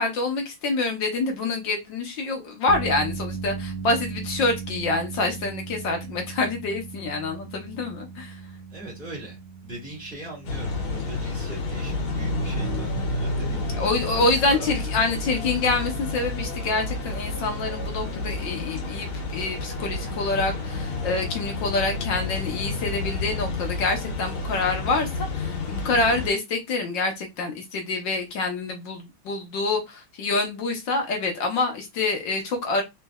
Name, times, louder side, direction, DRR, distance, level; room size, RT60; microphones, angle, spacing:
voice 1, 0.0-8.4 13.8-32.8, left 3 dB, 65° left, 1.6 m, -26 dB
sound 1, 2.7-17.0, right 5 dB, 70° right, 1.1 m, -39 dB
voice 2, 8.7-14.7, right 2 dB, 5° left, 1.3 m, -40 dB
sound 2, 10.4-26.3, left 2 dB, 85° left, 2.0 m, -30 dB
4.3 x 3.2 x 2.3 m
omnidirectional pair, 2.3 m